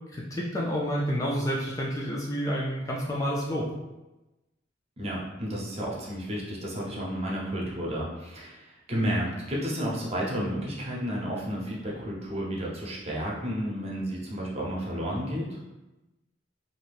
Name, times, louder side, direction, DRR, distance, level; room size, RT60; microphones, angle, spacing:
voice 1, 0.1-3.7, equal, 15° left, -4 dB, 0.3 m, -29 dB
voice 2, 5.0-15.6, equal, 30° right, -4 dB, 0.7 m, -32 dB
2.7 x 2.4 x 3.3 m, 1.0 s
head